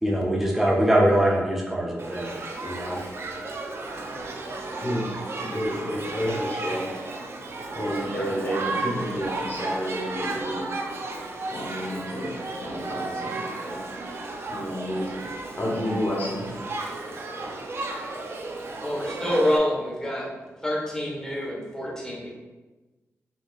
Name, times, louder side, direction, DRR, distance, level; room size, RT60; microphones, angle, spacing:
voice 1, 0.0-3.0, right 1 dB, 5° right, -3 dB, 0.8 m, -23 dB
Shout / Human group actions, 2.0-19.6, right 2 dB, 55° right, 0.5 m, -34 dB
voice 2, 4.7-5.1 5.4-6.8 7.7-10.7 11.5-13.9 14.5-15.1 15.5-16.4, equal, 35° left, -4 dB, 1.2 m, -30 dB
voice 3, 18.8-20.2 20.6-22.3, left 1 dB, 10° left, -4 dB, 1.1 m, -26 dB
4.4 x 2.8 x 2.4 m, 1.2 s
cardioid pair, 85°, 5 cm